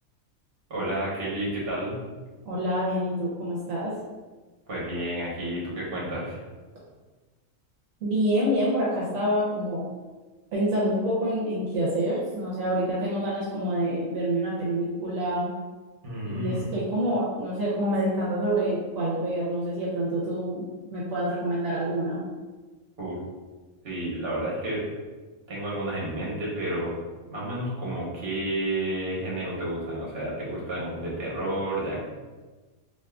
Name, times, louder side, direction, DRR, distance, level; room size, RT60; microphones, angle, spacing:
voice 1, 0.7-2.0 4.7-6.4 16.0-16.7 23.0-23.2 23.8-24.8 25.5-26.9 27.3-32.0, right 1 dB, 50° right, -5 dB, 1.2 m, -31 dB
voice 2, 2.4-3.9 8.0-9.8 10.5-15.5 16.2-22.2, right 1 dB, 75° right, -6 dB, 1.1 m, -27 dB
3.5 x 2.8 x 2.3 m, 1.3 s
omnidirectional pair, 1.4 m